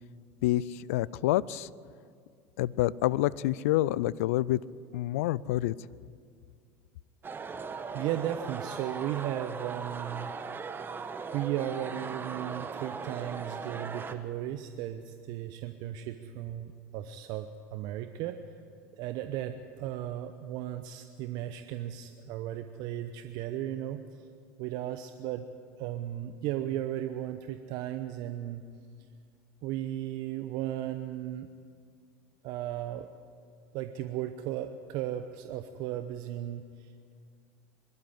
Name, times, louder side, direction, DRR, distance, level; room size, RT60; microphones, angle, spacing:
voice 1, 0.4-1.7 2.6-4.6 4.9-5.7, left 15 dB, 70° left, 21 dB, 0.4 m, -27 dB
sound 1, 7.2-14.1, right 5 dB, 25° right, 1.3 m, -39 dB
voice 2, 7.9-10.3 11.3-18.4 19.0-24.0 24.6-25.4 25.8-28.6 29.6-31.5 32.4-33.1 33.7-37.1, right 12 dB, 60° right, 9 dB, 0.9 m, -35 dB
22.0 x 12.0 x 9.9 m, 2.2 s
hypercardioid pair, 80°, 8 cm